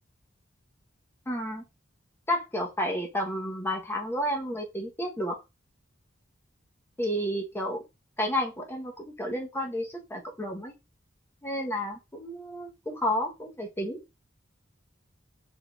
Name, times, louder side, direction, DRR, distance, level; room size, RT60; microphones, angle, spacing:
voice 1, 1.3-1.6 2.3-5.4 7.0-7.8 8.2-10.7 11.4-14.0, equal, 10° left, 0.8 m, -31 dB
4.2 x 3.7 x 2.2 m
head